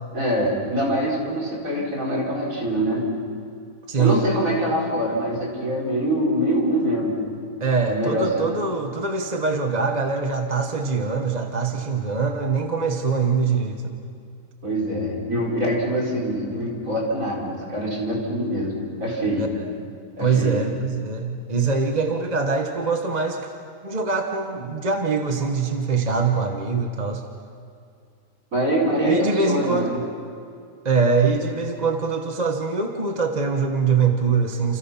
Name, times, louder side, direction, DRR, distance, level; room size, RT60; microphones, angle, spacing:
voice 1, 0.1-3.1 4.0-7.2 7.9-8.6 14.6-19.5 20.2-20.6 28.5-30.0, equal, 55° right, -3 dB, 5.2 m, -24 dB
voice 2, 3.9-4.2 7.6-14.0 19.4-19.5 20.2-23.4 23.8-27.2 29.0-29.9 30.8-34.8, right 4 dB, 25° right, 4 dB, 1.3 m, -23 dB
29.5 x 29.0 x 5.9 m, 2.3 s
omnidirectional pair, 1.7 m